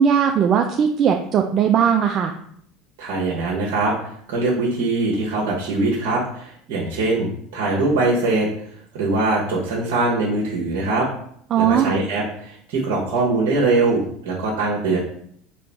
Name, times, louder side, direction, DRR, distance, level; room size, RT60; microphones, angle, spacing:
voice 1, 0.0-2.3 11.5-11.9, right 8 dB, 45° right, 3 dB, 0.4 m, -18 dB
voice 2, 3.0-3.9 4.3-8.5 8.9-11.1 11.6-15.0, right 2 dB, 65° right, -3 dB, 1.0 m, -22 dB
3.8 x 2.9 x 3.4 m, 0.66 s
hypercardioid pair, 85°, 0 cm